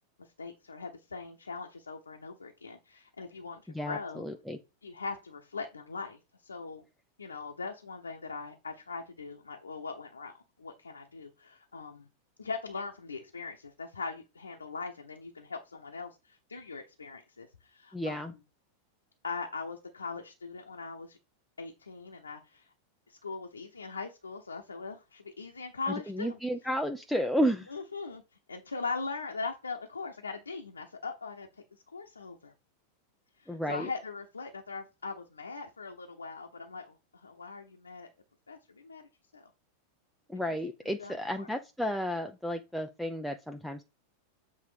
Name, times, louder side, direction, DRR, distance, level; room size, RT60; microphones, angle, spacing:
voice 1, 0.2-4.2 4.8-6.8 7.2-12.1 12.4-18.3 19.2-21.2 21.6-22.7 23.1-26.4 27.7-28.2 28.5-31.5 31.9-32.5 33.4-38.1 38.5-39.0 39.3-39.5 40.5-40.6 41.0-41.5, left 4 dB, 75° left, 2 dB, 0.9 m, -40 dB
voice 2, 3.7-4.6 17.9-18.3 25.9-27.7 33.5-33.9 40.3-43.8, equal, ahead, 4 dB, 0.6 m, -32 dB
7.9 x 3.7 x 5.0 m, 0.28 s
figure-of-eight pair, 90°, 0 cm